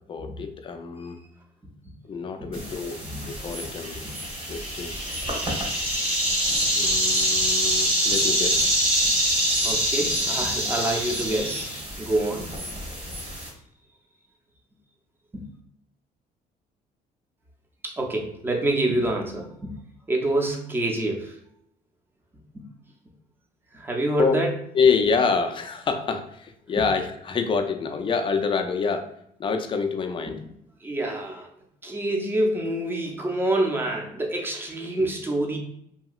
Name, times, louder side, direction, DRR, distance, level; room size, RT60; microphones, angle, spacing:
voice 1, 0.1-1.2 2.1-4.0 4.5-4.9 6.7-8.7 24.2-24.4 24.7-29.1 29.4-30.4, left 5 dB, 30° left, 6 dB, 0.4 m, -26 dB
sound 1, 2.5-13.5, equal, 35° right, 1.2 m, -25 dB
voice 2, 9.6-11.7 12.0-12.5 15.3-15.4 17.8-19.6 20.1-21.4 22.5-22.6 23.7-24.5 30.8-31.5 31.8-35.6, right 1 dB, 15° right, 1 dB, 0.6 m, -26 dB
2.8 x 2.8 x 2.3 m, 0.74 s
cardioid pair, 110°, 17 cm